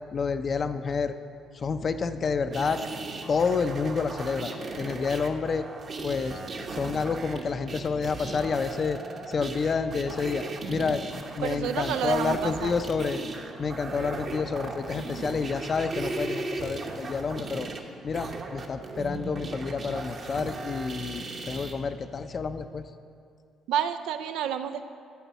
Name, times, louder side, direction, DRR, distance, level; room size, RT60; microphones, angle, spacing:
voice 1, 0.1-1.1 1.5-2.8 3.3-4.5 4.8-5.6 6.0-6.4 6.7-9.0 9.3-11.0 11.4-13.2 13.6-17.7 18.0-22.8, left 5 dB, 40° left, 9 dB, 0.5 m, -29 dB
sound 1, 2.5-21.7, right 3 dB, 45° right, 1.0 m, -37 dB
voice 2, 11.4-12.7 23.7-24.9, right 9 dB, 90° right, 9 dB, 0.4 m, -29 dB
11.5 x 4.6 x 8.1 m, 2.3 s
cardioid pair, 105°, 0 cm